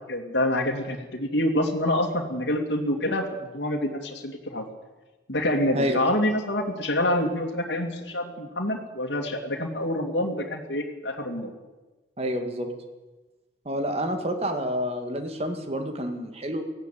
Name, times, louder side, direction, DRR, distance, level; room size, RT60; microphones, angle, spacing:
voice 1, 0.1-4.7 5.3-11.5, left 1 dB, 75° left, 1 dB, 2.7 m, -27 dB
voice 2, 12.2-12.7 13.7-16.6, equal, 35° right, 6 dB, 2.1 m, -28 dB
18.5 x 15.5 x 9.2 m, 1.2 s
head